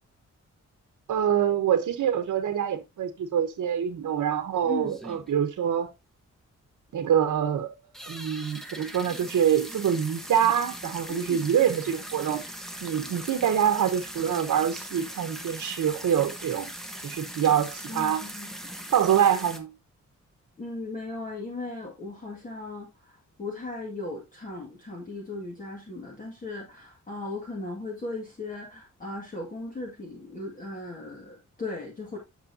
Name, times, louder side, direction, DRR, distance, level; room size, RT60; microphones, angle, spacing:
voice 1, 1.1-5.9 6.9-7.7 8.1-12.4 12.8-16.7 17.0-18.2 18.9-19.7, right 9 dB, 90° right, 1.1 m, -25 dB
sound 1, 3.9-4.0 4.4-4.5 4.8-5.5 5.9-6.0 6.1-6.2 6.6-6.7 7.2-7.5 7.9-19.6, right 1 dB, ahead, 1.1 m, -40 dB
voice 2, 4.6-5.0 11.1-11.5 17.9-18.9 20.6-32.2, left 2 dB, 25° left, 2.0 m, -37 dB
9.7 x 6.7 x 2.7 m
wide cardioid pair, 170°, 30 cm